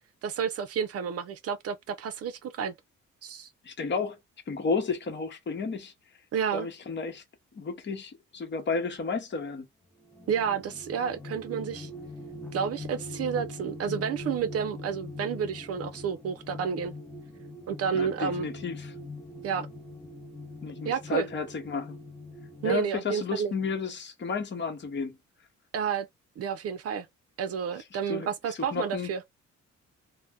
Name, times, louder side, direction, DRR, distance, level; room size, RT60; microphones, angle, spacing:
voice 1, 0.2-2.7 3.2-3.5 6.3-6.7 10.3-11.9 12.5-16.9 17.7-18.5 19.4-19.7 20.8-21.3 22.6-23.5 25.7-26.1 26.4-27.1 27.4-29.2, right 7 dB, 55° right, 0.5 m, -30 dB
voice 2, 3.6-4.2 4.5-5.9 6.5-7.2 7.5-9.7 17.9-18.9 20.6-22.0 22.6-25.2 28.1-28.3 28.6-29.1, left 4 dB, 40° left, 0.9 m, -32 dB
sound 1, 10.0-22.8, left 2 dB, 5° left, 0.8 m, -42 dB
2.5 x 2.1 x 3.4 m
cardioid pair, 90°, 30 cm